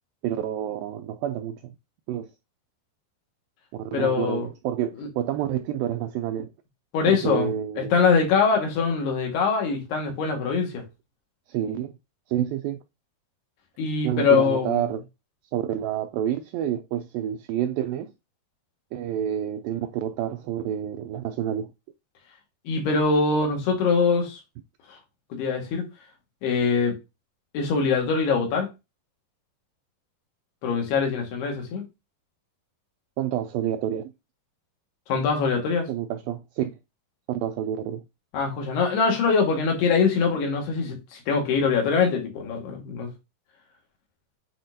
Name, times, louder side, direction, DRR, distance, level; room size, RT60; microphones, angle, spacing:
voice 1, 0.2-1.7 2.1-2.3 3.7-6.5 7.1-7.9 11.5-11.9 12.3-12.8 14.0-15.0 15.5-18.1 18.9-21.7 33.2-34.1 35.9-36.7 37.3-38.0, right 10 dB, 85° right, 2.0 m, -28 dB
voice 2, 3.9-4.5 5.0-5.1 6.9-10.8 13.8-14.9 22.7-24.4 25.3-25.8 26.4-26.9 27.5-28.7 30.6-31.8 35.1-35.9 38.3-43.1, left 5 dB, 80° left, 3.8 m, -23 dB
9.1 x 4.2 x 2.7 m
omnidirectional pair, 4.6 m